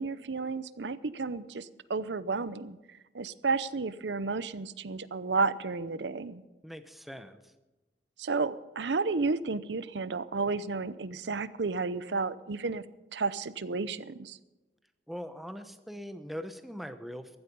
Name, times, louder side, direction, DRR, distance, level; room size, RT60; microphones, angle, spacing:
voice 1, 0.0-2.8 3.1-6.4 8.2-12.8 13.1-14.4, right 4 dB, 80° right, 16 dB, 0.7 m, -32 dB
voice 2, 6.6-7.5 15.1-17.4, equal, ahead, 9 dB, 1.0 m, -41 dB
15.5 x 13.5 x 5.4 m, 1.1 s
head